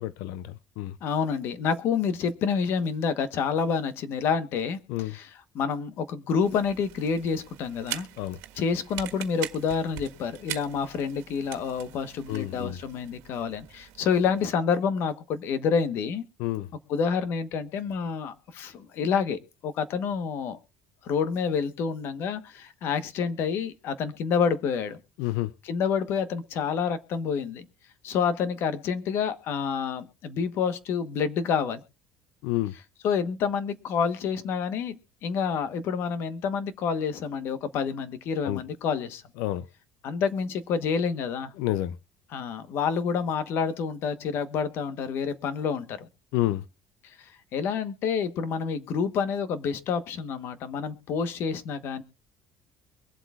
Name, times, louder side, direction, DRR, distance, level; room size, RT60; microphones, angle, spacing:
voice 1, 0.0-1.0 4.9-5.2 8.2-8.4 12.3-12.8 16.4-16.7 25.2-25.5 32.4-32.8 38.4-38.6 39.4-39.7 41.6-42.0 46.3-46.6, left 15 dB, 90° left, 0.4 m, -29 dB
voice 2, 1.0-4.8 5.1-5.3 5.5-8.1 8.6-16.2 16.9-20.6 21.0-25.0 25.7-27.7 28.0-31.8 33.0-35.0 35.2-39.2 40.0-41.5 42.3-46.1 47.0-52.0, left 6 dB, 50° left, 1.2 m, -28 dB
sound 1, 6.4-14.5, right 14 dB, 85° right, 1.5 m, -42 dB
23.5 x 7.8 x 2.4 m
cardioid pair, 170°, 5 cm